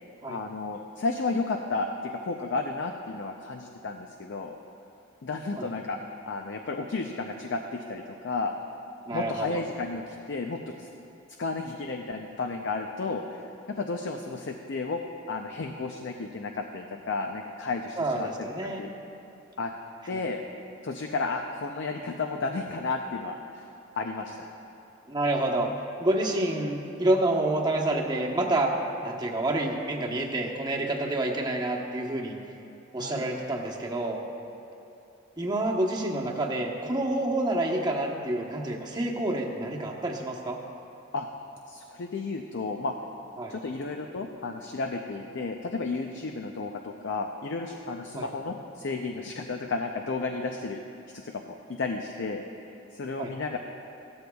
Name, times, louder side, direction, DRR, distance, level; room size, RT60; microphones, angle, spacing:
voice 1, 0.2-4.6 5.2-6.0 6.3-8.5 9.1-10.9 11.4-15.0 15.3-18.5 18.8-18.9 19.6-19.7 20.1-20.4 20.8-23.6 24.0-24.4 33.0-33.2 41.1-41.3 41.7-42.9 43.5-50.8 51.1-52.4 52.9-53.6, left 3 dB, 65° left, 4 dB, 0.5 m, -32 dB
voice 2, 9.1-9.6 18.0-18.9 20.1-20.2 25.1-25.7 26.0-28.7 29.0-32.4 32.9-34.2 35.4-40.6 43.4-43.5 48.1-48.3 53.2-53.3, right 1 dB, 20° right, -1 dB, 1.0 m, -28 dB
16.0 x 13.0 x 2.3 m, 2.7 s
head